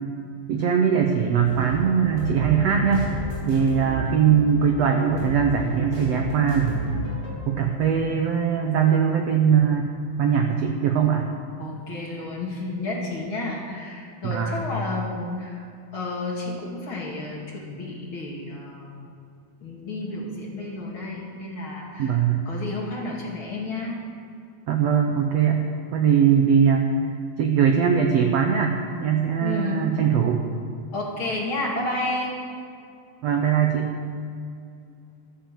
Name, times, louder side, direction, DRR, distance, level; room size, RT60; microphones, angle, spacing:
voice 1, 0.5-3.2 3.5-6.9 7.5-9.9 10.2-11.3 14.2-14.7 22.0-22.4 24.7-25.6 25.9-26.9 27.4-30.4 33.2-33.9, right 7 dB, 70° right, 3 dB, 1.5 m, -21 dB
sound 1, 1.5-7.4, right 1 dB, 20° right, 3.6 m, -32 dB
voice 2, 11.6-15.7 15.9-19.1 19.6-24.0 29.4-29.8 30.9-32.4, left 2 dB, 40° left, -3 dB, 2.6 m, -31 dB
13.0 x 11.5 x 7.6 m, 2.4 s
omnidirectional pair, 4.1 m